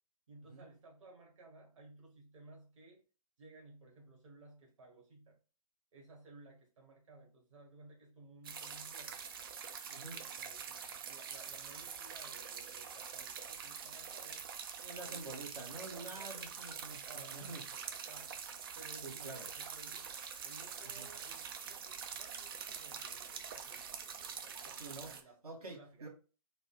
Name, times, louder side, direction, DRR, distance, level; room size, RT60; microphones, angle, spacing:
voice 1, 0.3-3.0 3.4-5.4 5.9-9.2 9.9-14.5 15.0-15.4 15.8-16.5 17.0-18.4 18.7-20.2 20.4-26.1, right 2 dB, 55° right, 1.6 m, -58 dB
sound 1, 8.4-25.2, right 7 dB, 35° right, 0.5 m, -45 dB
voice 2, 9.9-10.2 14.8-17.6 19.0-19.5 20.8-21.1 24.7-25.2 25.4-26.1, right 2 dB, 75° right, 1.7 m, -48 dB
4.1 x 2.3 x 4.6 m
figure-of-eight pair, 130°, 20 cm